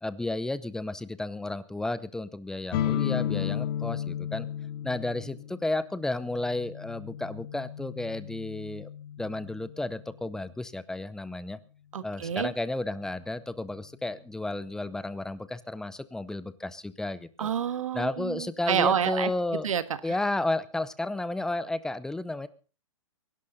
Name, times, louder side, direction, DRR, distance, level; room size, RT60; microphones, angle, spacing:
voice 1, 0.0-4.5 4.8-8.9 9.2-11.6 12.0-17.5 17.9-19.7 20.0-22.5, left 2 dB, 5° left, 15 dB, 0.6 m, -32 dB
sound 1, 2.7-10.3, left 10 dB, 40° left, 2.0 m, -34 dB
voice 2, 11.9-12.5 17.4-19.3 19.6-20.2, right 8 dB, 85° right, 13 dB, 1.4 m, -28 dB
23.0 x 11.5 x 4.0 m, 0.36 s
hypercardioid pair, 145°, 17 cm